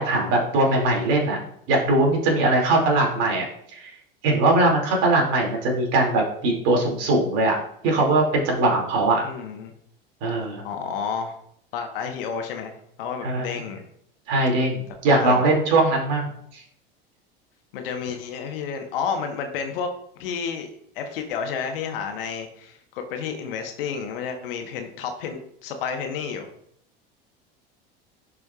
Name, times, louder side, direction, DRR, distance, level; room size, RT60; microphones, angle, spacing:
voice 1, 0.0-1.4 1.7-3.5 3.7-3.9 4.2-7.6 7.8-9.2 10.2-10.6 13.2-13.4 14.3-16.3, right 2 dB, 55° right, 0 dB, 2.6 m, -21 dB
voice 2, 9.2-9.7 10.6-11.4 11.7-13.8 15.0-15.4 17.7-19.9 20.2-26.5, left 6 dB, 65° left, 5 dB, 1.3 m, -31 dB
11.0 x 5.0 x 2.4 m, 0.71 s
hypercardioid pair, 75°, 29 cm